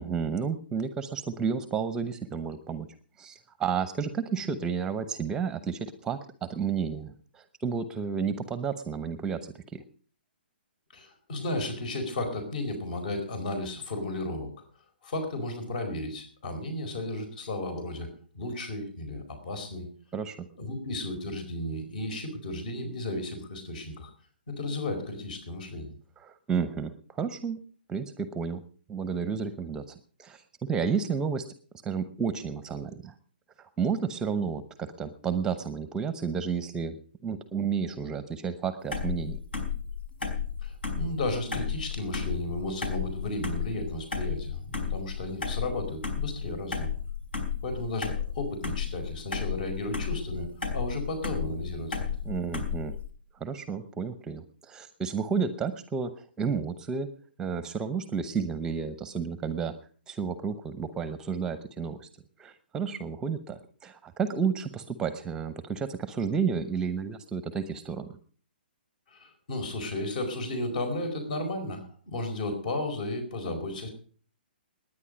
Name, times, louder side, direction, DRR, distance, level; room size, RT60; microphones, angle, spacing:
voice 1, 0.0-2.9 3.2-9.8 20.1-20.5 26.2-27.6 27.9-28.6 28.9-30.4 30.7-31.4 31.8-33.1 33.6-39.4 52.2-52.9 53.4-57.1 57.4-59.7 60.1-62.1 62.4-68.1, right 6 dB, 10° right, 12 dB, 0.8 m, -31 dB
voice 2, 10.9-14.5 15.0-18.1 18.3-19.9 20.5-24.1 24.5-25.9 40.6-46.9 47.6-52.0 69.1-73.9, left 1 dB, 50° left, 7 dB, 4.6 m, -34 dB
sound 1, 38.9-53.1, left 6 dB, 70° left, 4.8 m, -33 dB
19.5 x 9.9 x 5.3 m, 0.43 s
figure-of-eight pair, 125°, 6 cm